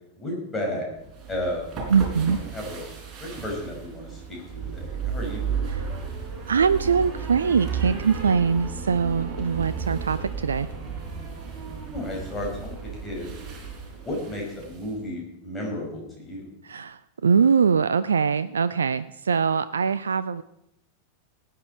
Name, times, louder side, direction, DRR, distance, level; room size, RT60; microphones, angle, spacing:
voice 1, 0.2-0.9 1.3-1.8 2.5-2.8 3.2-5.7 11.9-12.7 13.0-13.3 14.0-16.5, left 1 dB, 15° left, -1 dB, 5.7 m, -33 dB
sound 1, 1.0-14.9, right 6 dB, 25° right, 4.4 m, -34 dB
voice 2, 1.9-2.4 5.7-5.8 6.5-10.7 16.6-20.4, right 6 dB, 70° right, 14 dB, 0.4 m, -22 dB
19.0 x 9.4 x 4.5 m, 0.84 s
figure-of-eight pair, 90°, 0 cm